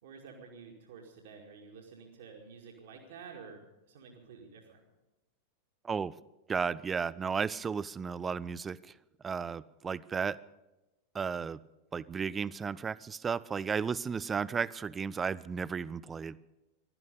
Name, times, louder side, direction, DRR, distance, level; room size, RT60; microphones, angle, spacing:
voice 1, 0.0-3.6 3.9-4.8, right 5 dB, 60° right, 1 dB, 2.2 m, -50 dB
voice 2, 6.5-8.8 9.2-10.4 11.1-11.6 11.9-16.4, right 6 dB, 20° right, 20 dB, 0.5 m, -34 dB
17.0 x 12.5 x 6.8 m, 1.0 s
figure-of-eight pair, 90°, 0 cm